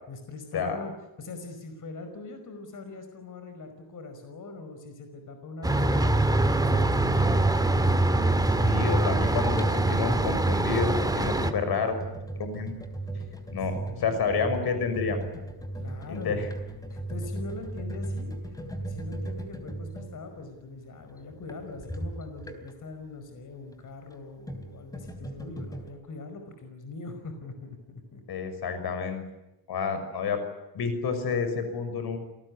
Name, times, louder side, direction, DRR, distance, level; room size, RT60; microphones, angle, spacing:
voice 1, 0.1-0.9 1.2-7.9 13.7-14.2 15.7-16.3 16.9-18.6 18.9-28.2, left 3 dB, 50° left, 7 dB, 5.3 m, -42 dB
sound 1, 5.6-11.5, right 2 dB, 10° right, 2.2 m, -24 dB
sound 2, 6.5-22.9 24.0-25.9, right 2 dB, 10° left, 3.8 m, -37 dB
voice 2, 8.6-12.0 12.4-12.8 13.5-15.2 16.1-16.5 28.3-29.2 29.7-30.4 30.7-32.2, left 5 dB, 75° left, 9 dB, 6.1 m, -29 dB
29.0 x 19.5 x 9.8 m, 0.95 s
cardioid pair, 130°, 38 cm